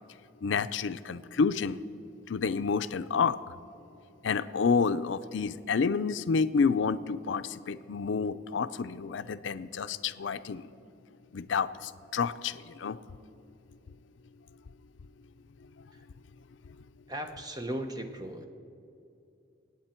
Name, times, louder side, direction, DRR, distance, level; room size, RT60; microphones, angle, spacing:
voice 1, 0.4-1.8 2.3-3.4 4.2-10.7 11.3-13.0, left 5 dB, 80° left, 12 dB, 0.5 m, -29 dB
voice 2, 17.1-18.5, right 1 dB, 20° right, 6 dB, 1.0 m, -37 dB
26.5 x 9.0 x 4.4 m, 2.6 s
head